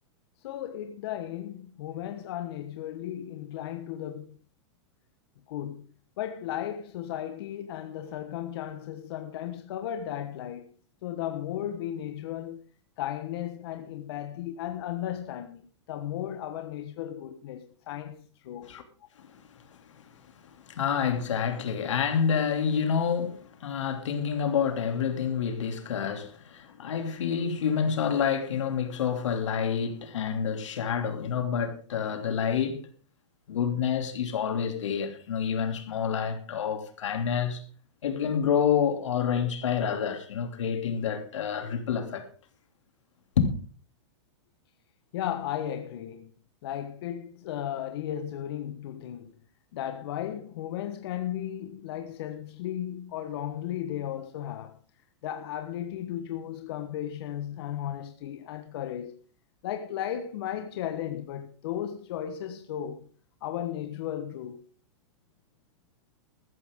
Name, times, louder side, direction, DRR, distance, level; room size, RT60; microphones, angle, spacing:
voice 1, 0.4-4.4 5.5-5.9 6.2-10.7 11.0-12.6 13.0-15.6 15.9-18.7 45.1-46.3 46.6-49.4 49.7-54.8 55.2-59.2 59.6-63.1 63.4-64.6, left 11 dB, 55° left, 1.3 m, -35 dB
voice 2, 20.7-32.8 33.5-37.6 38.0-42.3 43.4-43.5, left 7 dB, 90° left, 2.9 m, -28 dB
14.5 x 14.0 x 3.7 m
supercardioid pair, 160°, 15 cm